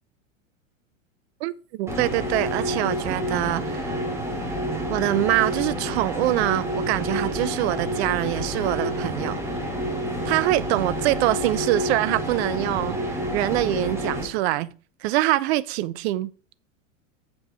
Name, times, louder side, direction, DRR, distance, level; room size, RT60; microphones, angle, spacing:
voice 1, 1.8-3.8 4.9-9.4 10.2-14.7 15.0-16.3, right 16 dB, 55° right, 0.6 m, -24 dB
sound 1, 1.9-14.3, equal, 5° right, 2.5 m, -28 dB
7.8 x 5.3 x 4.5 m
hypercardioid pair, 95°, 40 cm